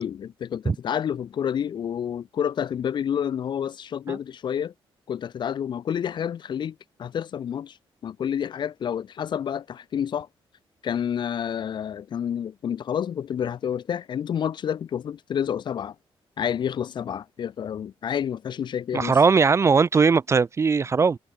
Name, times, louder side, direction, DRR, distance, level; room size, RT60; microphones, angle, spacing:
voice 1, 0.0-4.7 5.1-7.8 8.0-10.3 10.8-15.9 16.4-19.1, left 8 dB, 50° left, 0.4 m, -29 dB
voice 2, 18.9-21.2, right 5 dB, 30° right, 0.3 m, -19 dB
cardioid pair, 100°, 10 cm